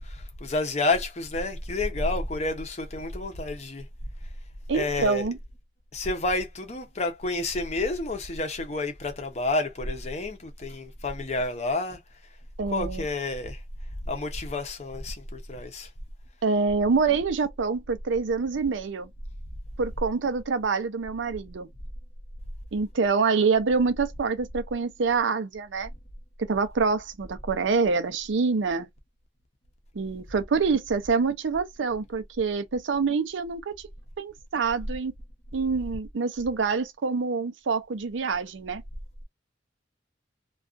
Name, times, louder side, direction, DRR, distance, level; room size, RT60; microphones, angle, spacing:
voice 1, 0.0-3.9 4.7-5.3 5.9-12.0 12.7-13.6 14.1-15.9, left 2 dB, 35° left, 0.6 m, -30 dB
voice 2, 4.7-5.4 12.6-13.1 16.4-19.1 19.8-21.7 22.7-25.9 26.4-28.9 29.9-33.9 34.2-35.1 35.5-38.8, right 4 dB, 90° right, 0.5 m, -26 dB
2.4 x 2.3 x 2.4 m
head